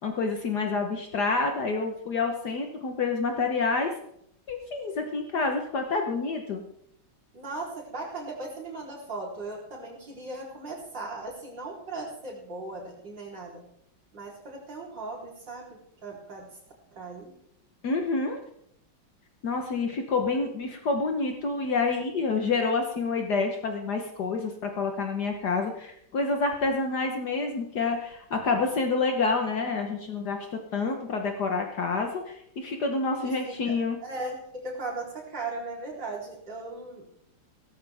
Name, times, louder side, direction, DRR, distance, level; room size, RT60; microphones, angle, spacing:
voice 1, 0.0-3.9 4.5-6.6 17.8-18.4 19.4-34.0, left 4 dB, 60° left, 3 dB, 1.7 m, -28 dB
voice 2, 7.3-13.6 14.1-16.5 16.9-17.3 33.2-33.8 34.0-37.0, right 2 dB, 65° right, -3 dB, 4.5 m, -38 dB
17.0 x 13.5 x 3.5 m, 0.74 s
omnidirectional pair, 2.1 m